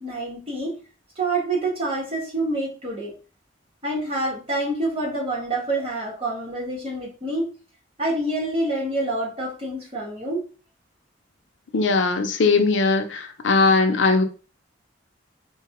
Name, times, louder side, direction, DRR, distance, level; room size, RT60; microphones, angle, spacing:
voice 1, 0.0-0.7 1.2-3.1 3.8-7.5 8.0-10.4, right 2 dB, 30° right, 1.3 m, -27 dB
voice 2, 11.7-14.2, left 3 dB, 80° left, 0.6 m, -19 dB
3.8 x 2.3 x 2.9 m
head